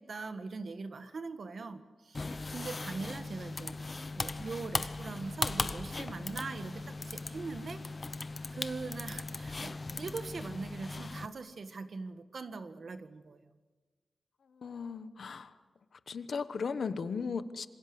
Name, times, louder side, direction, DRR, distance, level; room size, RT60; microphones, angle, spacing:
voice 1, 0.0-7.8 8.5-13.4, right 4 dB, 55° right, 1.5 m, -42 dB
sound 1, 2.1-11.3, left 3 dB, 30° left, 0.9 m, -38 dB
voice 2, 14.5-15.6 16.1-17.7, left 5 dB, 65° left, 1.2 m, -36 dB
27.5 x 26.0 x 7.9 m
wide cardioid pair, 160°, 0 cm